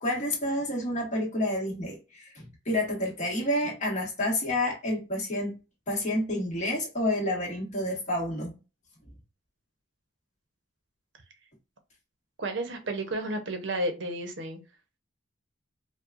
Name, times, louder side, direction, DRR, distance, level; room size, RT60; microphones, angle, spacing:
voice 1, 0.0-5.6 5.9-8.6 9.0-9.1, left 1 dB, 40° left, 1.5 m, -29 dB
voice 2, 12.4-14.6, right 1 dB, 65° right, 0.8 m, -32 dB
4.8 x 2.3 x 2.5 m
head